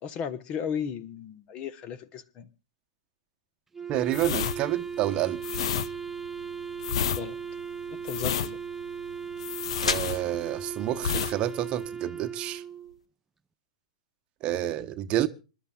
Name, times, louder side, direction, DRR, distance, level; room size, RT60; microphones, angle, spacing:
voice 1, 0.0-2.5 7.1-7.4 7.9-8.6, left 7 dB, 30° left, 1.3 m, -35 dB
Wind instrument woodwind instrument, 3.7-13.0, right 6 dB, 10° right, 0.7 m, -37 dB
voice 2, 3.9-5.4 9.8-12.6 14.4-15.3, right 13 dB, 30° right, 1.0 m, -29 dB
sound 1, 4.1-10.6 11.0-11.4 11.6-11.9, left 9 dB, 60° left, 0.8 m, -31 dB
sound 2, 7.1-13.0, left 4 dB, 80° left, 1.3 m, -39 dB
26.5 x 12.0 x 2.4 m
figure-of-eight pair, 110°, 3 cm